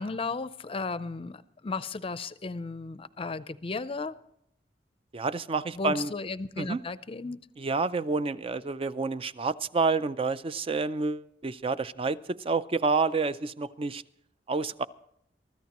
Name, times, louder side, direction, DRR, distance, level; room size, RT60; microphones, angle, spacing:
voice 1, 0.0-4.2 5.7-7.4, left 3 dB, 30° left, 15 dB, 0.5 m, -35 dB
voice 2, 5.1-6.1 6.6-6.8 7.6-14.0 14.5-14.8, right 4 dB, 30° right, 15 dB, 0.4 m, -29 dB
23.5 x 13.5 x 3.0 m, 0.75 s
head